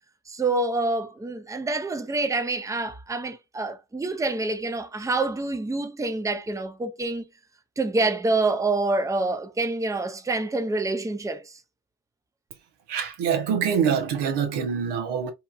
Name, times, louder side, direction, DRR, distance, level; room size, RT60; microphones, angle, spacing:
voice 1, 0.3-7.3 7.8-11.6, right 2 dB, 10° right, 0.5 m, -27 dB
voice 2, 12.9-15.3, right 7 dB, 85° right, 0.6 m, -25 dB
2.8 x 2.2 x 2.3 m
supercardioid pair, 50°, 41 cm